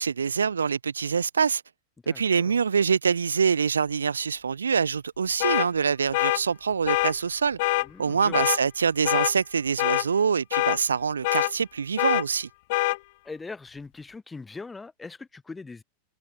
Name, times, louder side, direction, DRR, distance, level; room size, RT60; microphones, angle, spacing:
voice 1, 0.0-1.6 2.1-7.6 8.0-12.5, right 6 dB, 85° right, 0.6 m, -25 dB
voice 2, 2.0-2.6 7.8-8.5 13.2-15.8, left 4 dB, 15° left, 2.0 m, -41 dB
sound 1, 5.4-5.7 6.1-6.4 6.9-7.1 7.6-7.9 8.3-8.6 9.1-9.3 9.8-10.1 10.5-10.8 11.2-11.5 12.0-12.2 12.7-13.0, left 21 dB, 60° left, 0.6 m, -24 dB
figure-of-eight pair, 90°, 0 cm